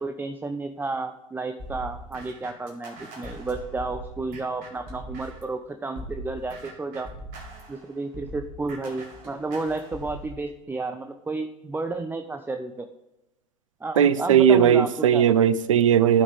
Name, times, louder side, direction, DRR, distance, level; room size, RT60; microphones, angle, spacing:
voice 1, 0.0-7.1 7.7-12.9 13.8-15.3, right 3 dB, 10° right, 0.6 m, -32 dB
sound 1, 1.6-5.5 6.0-10.3, right 1 dB, 55° right, 2.2 m, -41 dB
voice 2, 14.0-16.2, right 8 dB, 75° right, 0.5 m, -18 dB
14.0 x 6.2 x 3.4 m
figure-of-eight pair, 70°, 17 cm